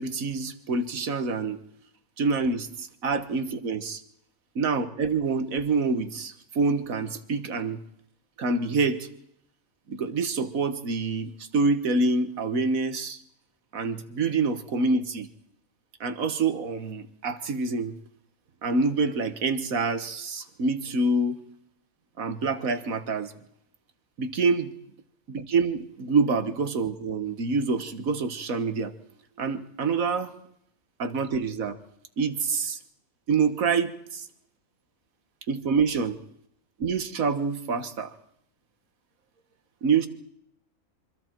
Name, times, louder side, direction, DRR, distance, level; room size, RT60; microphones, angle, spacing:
voice 1, 0.0-1.6 2.2-4.0 4.6-7.8 8.4-9.1 9.9-13.2 13.7-15.3 16.0-18.0 18.6-21.4 22.2-23.3 24.2-24.7 25.3-28.9 29.4-30.3 31.0-31.8 32.2-32.8 33.3-34.2 35.5-36.2 36.8-38.1 39.8-40.1, right 4 dB, 85° right, 10 dB, 1.8 m, -26 dB
26.5 x 25.0 x 4.6 m, 0.72 s
omnidirectional pair, 1.4 m